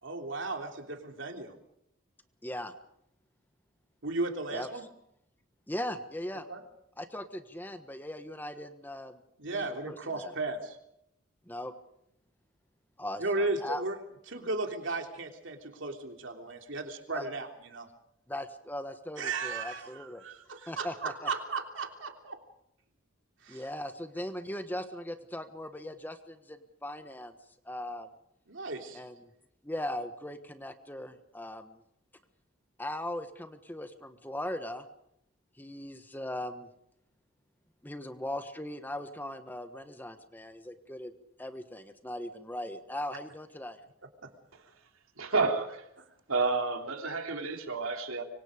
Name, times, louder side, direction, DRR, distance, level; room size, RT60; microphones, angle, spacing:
voice 1, 0.0-1.5 4.0-4.8 6.5-6.6 9.4-10.8 13.2-14.0 14.3-17.9 19.2-22.4 23.4-23.6 28.5-29.0 44.2-44.3, right 3 dB, 60° right, 4 dB, 3.3 m, -35 dB
voice 2, 2.4-2.7 4.5-4.7 5.7-6.5 7.0-10.3 11.5-11.7 13.0-13.8 17.1-17.3 18.3-20.2 20.7-21.3 23.5-27.3 27.6-28.1 28.9-29.3 29.6-31.8 32.8-34.8 35.6-36.7 37.8-41.1 41.4-43.8, left 1 dB, 10° left, 8 dB, 1.3 m, -39 dB
voice 3, 45.2-45.9 46.3-48.2, right 3 dB, 85° right, 4 dB, 3.3 m, -30 dB
25.5 x 24.5 x 5.1 m, 0.77 s
head